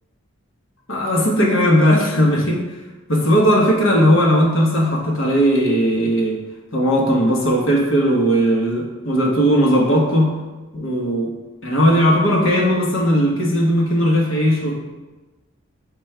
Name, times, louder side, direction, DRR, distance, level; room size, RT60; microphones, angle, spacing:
voice 1, 0.9-2.6 3.1-6.4 6.7-10.3 10.7-11.3 11.6-14.8, equal, 65° left, -2 dB, 0.9 m, -17 dB
5.1 x 2.3 x 4.2 m, 1.2 s
head